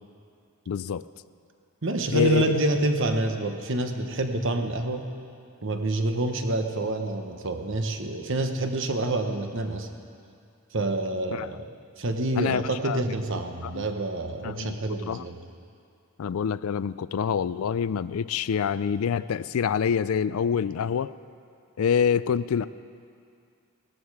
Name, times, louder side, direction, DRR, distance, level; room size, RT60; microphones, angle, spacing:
voice 1, 0.7-1.0 2.1-2.4 11.3-11.5 12.4-13.0 13.6-13.8 14.4-14.8 15.1-15.2 16.2-21.1 21.8-22.7, left 7 dB, 70° left, 17 dB, 0.4 m, -26 dB
voice 2, 1.8-5.1 5.6-9.9 10.7-11.7 12.0-15.3, right 2 dB, 60° right, 5 dB, 1.1 m, -27 dB
17.0 x 14.0 x 4.8 m, 2.4 s
head